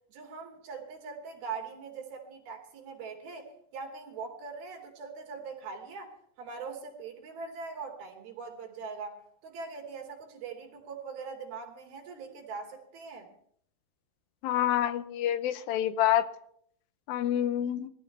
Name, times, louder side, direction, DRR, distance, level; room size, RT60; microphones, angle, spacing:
voice 1, 0.1-13.3, right 5 dB, 70° right, 1 dB, 4.5 m, -42 dB
voice 2, 14.4-16.3 17.1-17.9, left 11 dB, 80° left, 12 dB, 2.4 m, -27 dB
21.5 x 14.5 x 3.3 m, 0.65 s
omnidirectional pair, 4.5 m